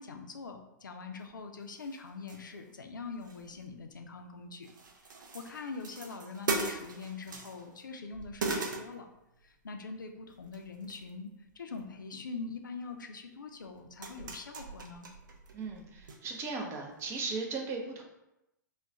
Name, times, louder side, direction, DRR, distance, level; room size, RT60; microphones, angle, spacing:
voice 1, 0.0-4.7 5.1-9.1 9.4-15.1, left 4 dB, 80° left, 5 dB, 0.4 m, -43 dB
sound 1, 1.3-1.4 1.7-2.7 3.0-4.3 4.6-7.8 8.1-9.5 10.3-11.1 11.5-11.9 12.9-13.0 13.6-16.2 16.4-16.5 17.0-17.2, right 3 dB, 75° right, 0.4 m, -40 dB
voice 2, 15.5-18.0, right 4 dB, 25° right, 1 dB, 0.5 m, -37 dB
2.3 x 2.1 x 3.7 m, 0.90 s
figure-of-eight pair, 110°, 10 cm